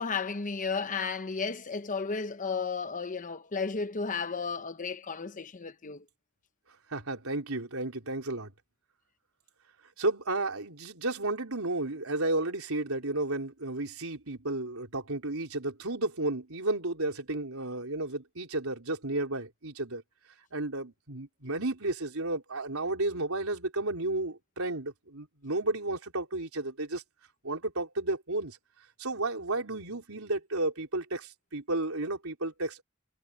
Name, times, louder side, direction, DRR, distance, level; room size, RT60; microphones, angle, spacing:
voice 1, 0.0-6.0, left 5 dB, 40° left, 0.9 m, -33 dB
voice 2, 6.9-8.5 10.0-20.0 20.5-27.0 27.4-28.6 29.0-32.8, right 2 dB, 80° right, 4.2 m, -32 dB
head